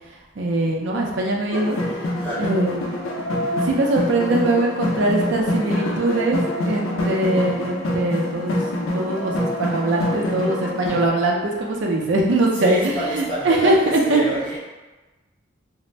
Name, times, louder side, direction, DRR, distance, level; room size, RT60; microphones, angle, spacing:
voice 1, 0.4-1.8 2.4-2.9 3.6-8.6 8.9-14.4, right 2 dB, 60° right, -1 dB, 0.4 m, -21 dB
sound 1, 1.5-11.1, left 1 dB, 85° left, 0.5 m, -25 dB
voice 2, 2.2-2.6 12.5-14.6, right 1 dB, 10° left, -11 dB, 0.5 m, -28 dB
2.5 x 2.0 x 3.1 m, 1.2 s
head